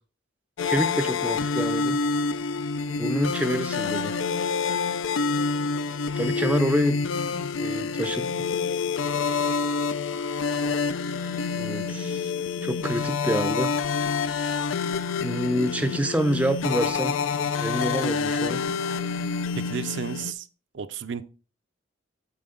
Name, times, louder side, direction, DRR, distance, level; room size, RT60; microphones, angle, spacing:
sound 1, 0.6-20.3, left 5 dB, 85° left, 0.4 m, -27 dB
voice 1, 0.6-2.0 3.0-4.1 6.2-7.0 7.3-8.4 11.5-12.3 12.6-13.7 15.2-17.1 17.4-18.6, right 1 dB, 5° right, 0.5 m, -27 dB
voice 2, 19.5-20.5 20.7-21.2, right 6 dB, 65° right, 0.4 m, -32 dB
7.6 x 4.3 x 3.7 m
head